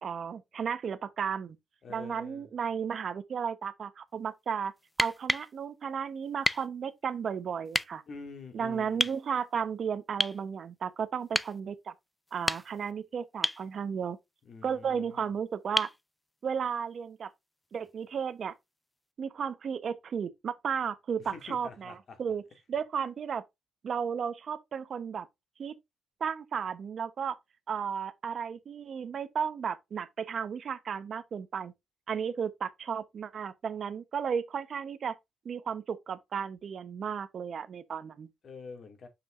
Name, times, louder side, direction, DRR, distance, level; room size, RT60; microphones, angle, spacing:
voice 1, 0.0-1.6 1.9-4.7 5.0-8.0 8.5-11.9 12.3-14.2 14.6-15.9 16.4-17.3 17.7-18.5 19.2-22.4 22.7-23.4 23.8-25.3 25.6-25.7 26.2-27.4 27.7-31.7 32.1-35.2 35.4-38.3, right 7 dB, 55° right, 0.9 m, -34 dB
voice 2, 1.8-2.5 8.1-9.1 14.5-15.3 21.2-22.2 38.4-39.1, left 4 dB, 55° left, 2.2 m, -46 dB
sound 1, 4.9-5.5 6.4-6.7 7.7-7.9 9.0-9.2 10.2-10.4 11.3-11.6 12.3-12.9 13.4-13.7 15.8-16.0 17.8-17.9, left 1 dB, 10° left, 0.3 m, -30 dB
6.9 x 5.6 x 2.5 m
cardioid pair, 90°, 0 cm